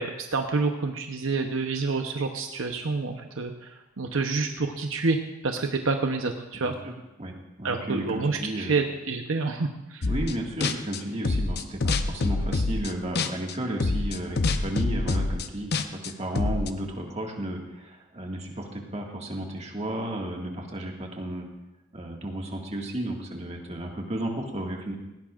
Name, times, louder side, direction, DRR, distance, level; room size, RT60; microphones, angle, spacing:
voice 1, 0.0-5.2 5.4-6.7 7.6-10.1, right 3 dB, 70° right, 4 dB, 0.8 m, -28 dB
voice 2, 6.5-6.9 7.2-7.3 7.6-8.8 10.1-21.5 21.9-25.0, right 1 dB, 30° right, 0 dB, 1.8 m, -33 dB
sound 1, 10.0-10.3 10.6-13.5 13.8-16.7, left 3 dB, 50° left, 0.7 m, -26 dB
18.0 x 17.0 x 2.5 m, 0.95 s
head